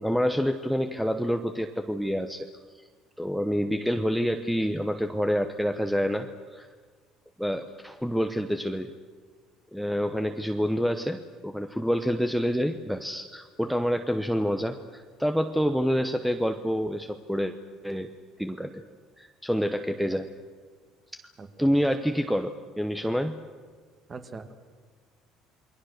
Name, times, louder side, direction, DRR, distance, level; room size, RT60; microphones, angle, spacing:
voice 1, 0.0-2.5 3.2-6.7 7.4-8.9 9.7-17.5 17.8-18.1 18.4-18.8 19.2-20.3 21.6-23.3, equal, ahead, 7 dB, 1.0 m, -27 dB
voice 2, 21.4-21.7 24.1-24.5, right 4 dB, 25° right, 8 dB, 2.0 m, -42 dB
28.5 x 22.0 x 6.6 m, 1.5 s
cardioid pair, 135°, 0 cm